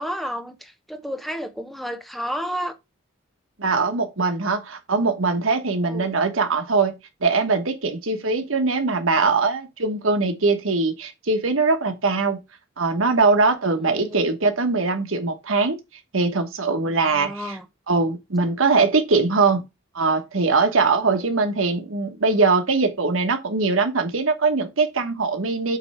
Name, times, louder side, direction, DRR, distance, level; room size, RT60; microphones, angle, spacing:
voice 1, 0.0-2.7 5.8-6.2 13.8-14.2 17.1-17.6 21.2-21.4, equal, ahead, 1.0 m, -31 dB
voice 2, 3.6-12.4 12.8-15.8 16.1-17.6 17.9-19.7 19.9-25.8, right 4 dB, 85° right, 1.3 m, -21 dB
8.0 x 3.2 x 5.6 m
head